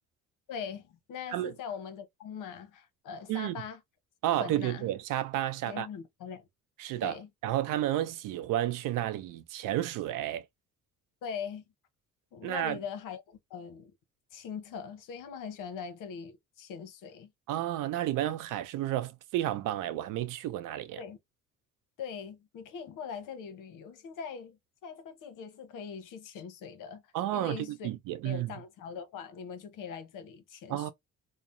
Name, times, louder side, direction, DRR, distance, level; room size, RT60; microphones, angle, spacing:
voice 1, 0.5-3.8 4.4-4.9 5.7-6.5 7.0-7.3 11.2-11.6 12.3-13.9 14.3-17.3 21.0-21.2 22.0-27.9 28.2-30.9, left 6 dB, 70° left, 0.9 m, -41 dB
voice 2, 4.2-5.9 6.8-10.4 12.4-12.8 17.5-21.0 27.1-27.6 27.8-28.5 30.7-30.9, right 13 dB, 75° right, 0.6 m, -31 dB
2.9 x 2.1 x 2.6 m
cardioid pair, 90°, 32 cm